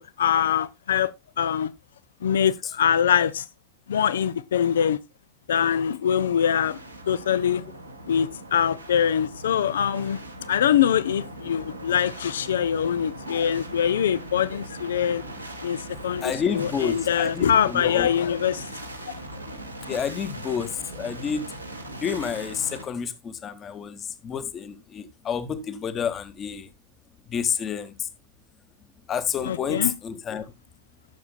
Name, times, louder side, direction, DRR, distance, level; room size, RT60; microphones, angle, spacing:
voice 1, 0.0-1.7 2.2-3.5 3.9-5.0 5.5-6.8 7.1-7.7 8.1-10.2 10.5-15.2 15.6-18.6 19.1-19.2 29.4-29.9, left 8 dB, 65° left, 0.5 m, -23 dB
sound 1, 6.1-22.8, right 1 dB, 90° right, 1.7 m, -40 dB
voice 2, 16.2-18.1 19.9-21.5 22.0-26.7 27.3-28.1 29.1-30.5, left 7 dB, 25° left, 1.1 m, -29 dB
15.5 x 6.9 x 2.2 m
figure-of-eight pair, 90°, 0 cm